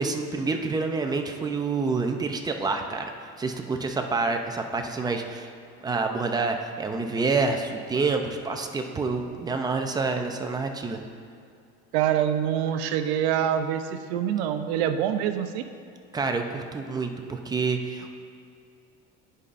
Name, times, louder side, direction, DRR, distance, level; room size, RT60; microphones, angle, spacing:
voice 1, 0.0-5.5 5.8-11.0 16.1-18.1, right 4 dB, 15° right, 4 dB, 0.4 m, -28 dB
voice 2, 11.9-15.6, right 9 dB, 85° right, 8 dB, 0.7 m, -25 dB
16.5 x 5.5 x 2.5 m, 2.4 s
cardioid pair, 145°, 31 cm